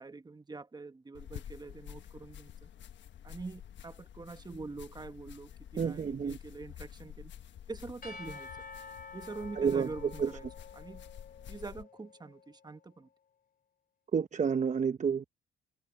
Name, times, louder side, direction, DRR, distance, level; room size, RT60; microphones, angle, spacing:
voice 1, 0.0-2.7 3.2-7.3 7.7-8.5 9.1-10.5 10.7-11.0 11.5-13.1, right 3 dB, 20° right, 1.2 m, -45 dB
sound 1, 1.1-11.8, left 10 dB, 65° left, 1.4 m, -49 dB
voice 2, 5.8-6.4 9.6-10.3 14.1-15.2, right 6 dB, 35° right, 0.9 m, -30 dB
Percussion / Church bell, 8.0-12.4, left 4 dB, 45° left, 3.8 m, -49 dB
cardioid pair, 90°, 20 cm